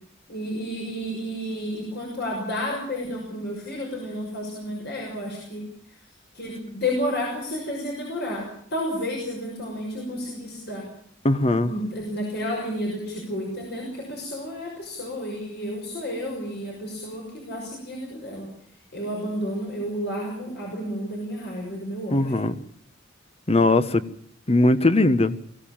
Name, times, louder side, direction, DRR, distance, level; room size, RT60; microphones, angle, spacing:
voice 1, 0.3-5.6 6.3-10.8 11.5-18.5 18.9-22.2, equal, 55° left, -1 dB, 6.3 m, -31 dB
voice 2, 11.2-11.7 22.1-22.6 23.5-24.0 24.5-25.4, left 2 dB, 30° left, 13 dB, 1.2 m, -19 dB
23.0 x 16.0 x 8.9 m, 0.65 s
head